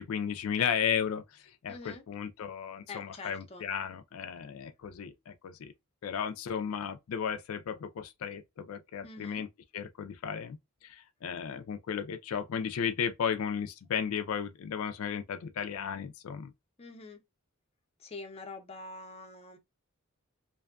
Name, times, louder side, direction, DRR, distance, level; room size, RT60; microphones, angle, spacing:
voice 1, 0.0-5.7 6.0-9.5 9.7-10.6 10.8-16.5, left 7 dB, 85° left, 0.4 m, -34 dB
voice 2, 1.7-2.0 2.9-3.7 9.0-9.4 16.8-17.2 18.0-19.6, left 3 dB, 30° left, 0.5 m, -45 dB
2.6 x 2.2 x 2.3 m
head